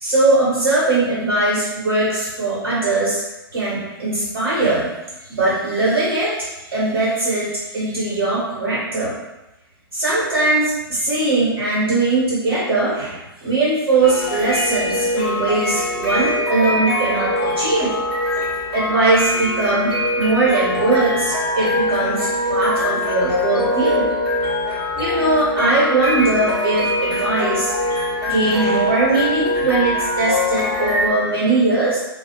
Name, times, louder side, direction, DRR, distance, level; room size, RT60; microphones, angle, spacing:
voice 1, 0.0-3.2 3.5-4.9 5.2-9.2 9.9-17.9 18.7-24.1 24.9-27.7 28.2-32.0, right 2 dB, 60° right, -8 dB, 0.8 m, -20 dB
sound 1, 14.0-31.1, left 1 dB, ahead, 0.9 m, -22 dB
2.4 x 2.0 x 2.8 m, 0.98 s
figure-of-eight pair, 110°, 13 cm